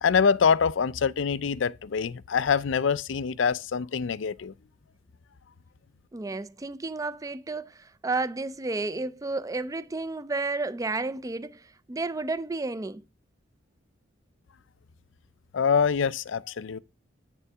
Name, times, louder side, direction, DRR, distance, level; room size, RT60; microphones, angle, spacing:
voice 1, 0.0-4.5 15.5-16.8, left 6 dB, 65° left, 0.4 m, -25 dB
voice 2, 6.1-13.0, right 3 dB, 15° right, 0.4 m, -32 dB
8.8 x 6.9 x 3.4 m
head